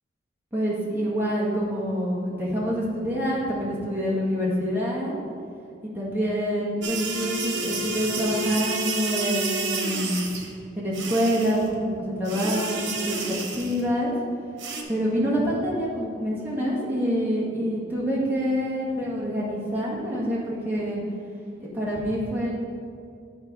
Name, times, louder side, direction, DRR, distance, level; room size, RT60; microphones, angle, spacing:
voice 1, 0.5-5.1 5.9-10.3 10.7-14.1 14.9-21.0 21.6-22.5, equal, 10° right, -7 dB, 1.5 m, -26 dB
sound 1, 6.8-10.5 10.9-11.7 12.3-13.9 14.6-14.8, right 3 dB, 85° right, 1.0 m, -30 dB
9.6 x 4.4 x 4.8 m, 2.3 s
head